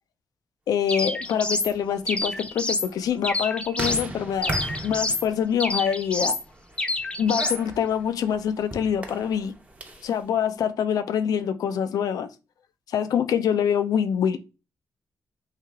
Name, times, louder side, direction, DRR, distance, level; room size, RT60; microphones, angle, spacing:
voice 1, 0.7-4.5 4.8-6.4 7.2-9.5 10.0-12.3 12.9-14.4, left 8 dB, 80° left, 0.4 m, -25 dB
sound 1, 0.9-1.7 2.1-2.9 3.2-4.1 4.4-5.3 5.6-6.4 6.8-7.6, left 2 dB, 15° left, 0.5 m, -28 dB
sound 2, 1.1-10.2, right 2 dB, 20° right, 0.7 m, -38 dB
3.3 x 2.7 x 3.4 m
cardioid pair, 90°, 6 cm